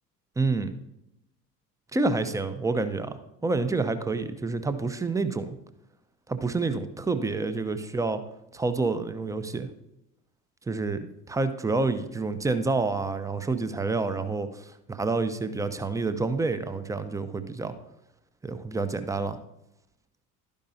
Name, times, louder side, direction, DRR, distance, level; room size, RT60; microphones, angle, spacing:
voice 1, 0.4-0.7 1.9-5.6 6.3-8.2 8.5-9.7 10.7-17.7 18.4-19.4, right 3 dB, 5° right, 11 dB, 0.6 m, -28 dB
12.0 x 10.0 x 2.7 m, 0.86 s
figure-of-eight pair, 60°, 46 cm